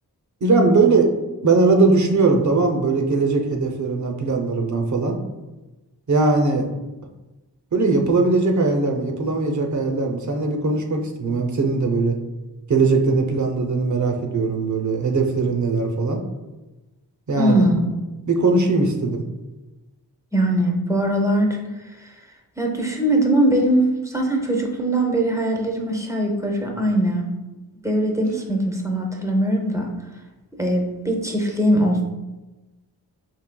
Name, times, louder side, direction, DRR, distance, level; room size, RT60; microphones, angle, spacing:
voice 1, 0.4-1.1 1.4-5.2 6.1-6.7 7.7-12.2 12.7-16.2 17.3-17.6 18.3-19.2, right 3 dB, 45° right, 3 dB, 0.6 m, -20 dB
voice 2, 17.3-17.9 20.3-21.6 22.6-27.3 27.8-29.9 30.6-32.0, right 1 dB, 10° right, 1 dB, 0.6 m, -21 dB
4.6 x 3.1 x 2.2 m, 1.1 s
wide cardioid pair, 60°, 41 cm